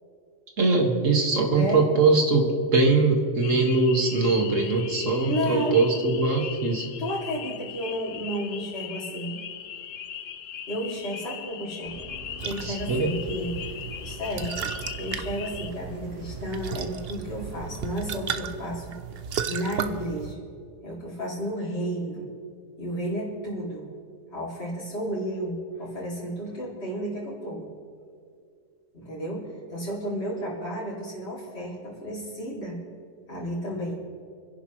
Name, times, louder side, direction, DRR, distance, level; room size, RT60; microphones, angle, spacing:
voice 1, 0.6-6.9 12.6-13.1, right 3 dB, 75° right, 1 dB, 2.1 m, -22 dB
voice 2, 1.5-1.8 5.3-5.8 7.0-9.4 10.7-12.0 12.4-13.8 14.0-14.6 15.0-18.9 19.5-20.4 20.8-22.2 22.8-23.8 24.3-27.7 28.9-32.8 33.3-33.9, equal, 50° left, -7 dB, 2.9 m, -32 dB
sound 1, 3.4-15.7, left 9 dB, 75° left, 1.1 m, -39 dB
sound 2, 11.8-18.4, right 2 dB, 40° right, 4.6 m, -43 dB
sound 3, 12.4-20.4, right 7 dB, 55° right, 0.8 m, -35 dB
28.0 x 11.0 x 3.1 m, 2.3 s
omnidirectional pair, 1.3 m